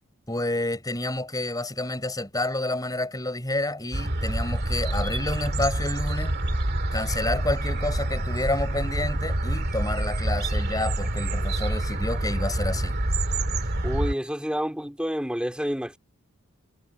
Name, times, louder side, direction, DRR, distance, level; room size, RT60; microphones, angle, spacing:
voice 1, 0.3-6.4 6.9-13.0, left 2 dB, 15° left, 7.0 m, -29 dB
sound 1, 3.9-14.1, right 1 dB, 45° right, 2.2 m, -27 dB
voice 2, 13.8-16.0, equal, 5° right, 3.3 m, -29 dB
head